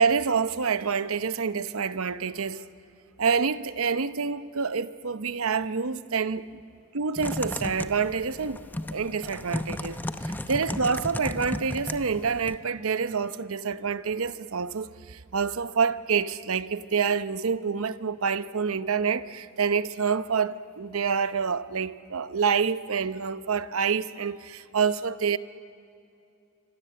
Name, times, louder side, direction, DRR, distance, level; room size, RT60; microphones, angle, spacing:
voice 1, 0.0-2.6 3.2-6.6 6.9-8.6 8.9-25.4, right 5 dB, 70° right, 0.8 m, -27 dB
Typing, 7.2-12.6, left 1 dB, 10° left, 0.8 m, -34 dB
26.5 x 25.0 x 7.7 m
head